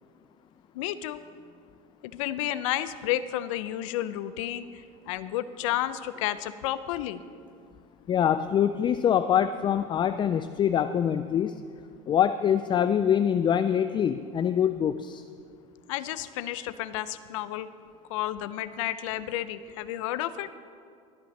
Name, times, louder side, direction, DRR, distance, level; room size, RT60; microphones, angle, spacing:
voice 1, 0.7-1.2 2.0-4.6 5.1-7.2 15.9-17.7 18.1-20.5, left 13 dB, 80° left, 13 dB, 0.5 m, -31 dB
voice 2, 8.1-11.6 12.1-15.2, left 9 dB, 30° left, 11 dB, 0.3 m, -24 dB
23.5 x 8.4 x 3.2 m, 2.3 s
supercardioid pair, 95°, 16 cm